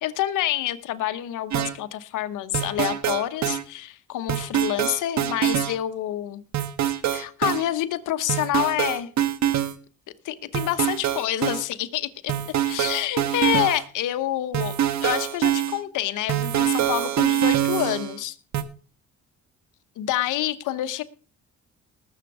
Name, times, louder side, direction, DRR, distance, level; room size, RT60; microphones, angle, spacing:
voice 1, 0.0-6.4 7.1-9.1 10.2-12.3 12.7-14.7 15.0-18.4 20.0-21.0, left 13 dB, 85° left, 1.1 m, -27 dB
sound 1, 1.5-1.8 2.5-3.6 4.3-5.7 6.5-7.6 8.3-9.7 10.5-11.6 12.3-13.8 14.5-15.8 16.3-18.2 18.5-18.6, right 11 dB, 65° right, 1.5 m, -24 dB
19.5 x 7.3 x 4.9 m
cardioid pair, 90°, 30 cm